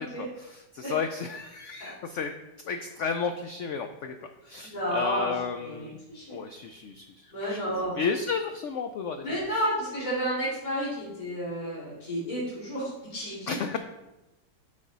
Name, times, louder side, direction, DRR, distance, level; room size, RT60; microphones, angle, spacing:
voice 1, 0.0-2.3 2.7-4.1 4.4-6.0 6.3-7.6 7.9-9.2 13.5-13.8, left 5 dB, 90° left, 7 dB, 0.6 m, -33 dB
voice 2, 4.6-5.3 5.7-6.4 7.3-7.9 9.2-13.6, equal, 25° left, -9 dB, 2.6 m, -31 dB
8.5 x 5.3 x 4.0 m, 0.98 s
omnidirectional pair, 1.8 m